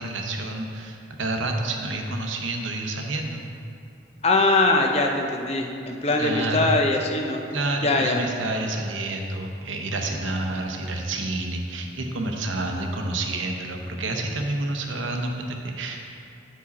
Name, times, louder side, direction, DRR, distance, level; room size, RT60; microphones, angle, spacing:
voice 1, 0.0-3.4 6.2-6.7 7.5-16.0, right 2 dB, 85° right, 3 dB, 0.8 m, -29 dB
voice 2, 4.2-7.4 7.8-8.2 10.1-10.2, left 2 dB, 35° left, 2 dB, 0.6 m, -22 dB
8.9 x 4.8 x 4.1 m, 2.5 s
head